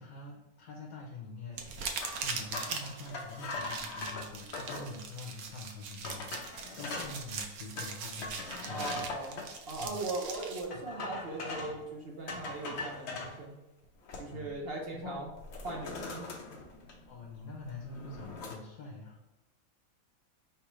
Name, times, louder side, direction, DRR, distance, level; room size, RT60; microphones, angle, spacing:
voice 1, 0.0-9.2 9.8-10.0 14.3-14.5 14.9-15.3 17.1-19.2, left 3 dB, 80° left, 1 dB, 1.1 m, -46 dB
sound 1, 1.5-10.6, right 5 dB, 90° right, 1.1 m, -41 dB
sound 2, 2.0-4.9 5.5-5.6 6.0-7.2 7.8-9.5 10.7-11.8 12.3-13.4 13.8-14.5 14.8-15.0 15.4-17.3 17.6-18.6, left 3 dB, 60° left, 0.9 m, -41 dB
voice 2, 8.7-9.4 9.7-13.5 14.2-15.3 15.6-16.3, right 2 dB, 55° right, -1 dB, 0.8 m, -39 dB
4.7 x 3.3 x 3.0 m, 1.0 s
omnidirectional pair, 1.5 m